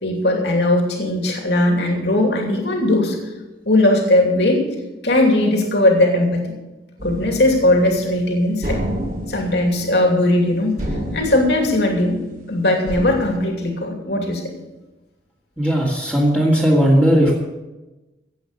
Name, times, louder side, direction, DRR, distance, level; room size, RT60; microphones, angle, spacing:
voice 1, 0.0-3.2 3.7-4.6 5.0-6.5 7.0-8.8 9.3-10.8 11.1-12.2 12.5-14.4, left 1 dB, 70° left, 2 dB, 2.7 m, -18 dB
sound 1, 7.0-8.2 8.6-10.5 10.8-12.4 12.9-13.3, equal, 50° right, 5.5 m, -29 dB
voice 2, 15.6-17.4, equal, 10° right, -7 dB, 2.4 m, -16 dB
16.5 x 8.4 x 6.7 m, 1.1 s
head